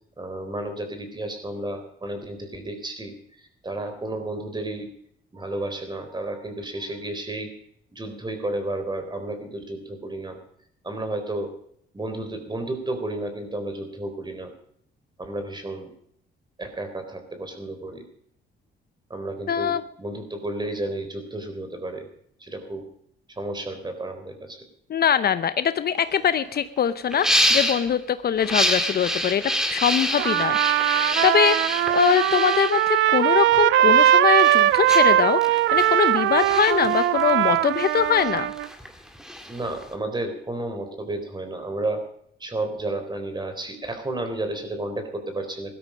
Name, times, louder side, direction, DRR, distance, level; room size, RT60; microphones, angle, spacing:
voice 1, 0.2-4.9 5.3-7.5 7.9-10.4 10.8-11.5 11.9-14.5 15.2-15.9 16.6-18.0 19.1-22.1 22.4-22.8 23.3-24.6 39.5-42.0 42.4-45.7, right 2 dB, 20° right, 7 dB, 3.9 m, -32 dB
voice 2, 19.5-19.8 24.9-38.5, left 8 dB, 50° left, 13 dB, 0.8 m, -23 dB
sound 1, 26.0-26.1 26.3-26.6 27.1-27.9 28.4-33.6 34.1-39.9, equal, 5° right, 2.2 m, -27 dB
Trumpet, 30.2-38.7, right 12 dB, 80° right, 0.5 m, -20 dB
16.0 x 13.0 x 5.2 m, 0.67 s
cardioid pair, 90°, 20 cm